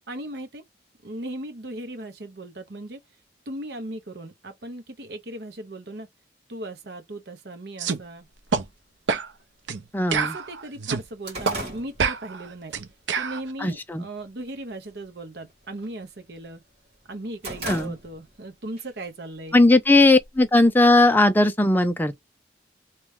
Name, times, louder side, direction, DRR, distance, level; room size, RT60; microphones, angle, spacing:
voice 1, 0.1-0.6 1.0-3.0 3.5-6.1 6.5-8.3 10.2-12.8 13.1-16.6 17.1-19.6, right 1 dB, 60° right, 0.9 m, -37 dB
sound 1, 7.8-8.0 8.5-8.6 9.1-9.3 9.7-9.8 10.1-11.0 11.4-11.6 12.0-13.4, right 5 dB, 85° right, 0.6 m, -26 dB
sound 2, 8.4-8.5 9.4-9.5 9.9-10.0 10.4-12.8 13.2-13.5 13.9-14.4 14.7-15.0 15.3-16.6 16.9-18.4 18.8-18.9 19.8-20.7, right 1 dB, 35° right, 1.8 m, -38 dB
voice 2, 9.9-10.4 13.6-14.0 17.6-18.0 19.5-22.2, left 2 dB, 10° left, 0.4 m, -18 dB
3.3 x 3.0 x 3.5 m
head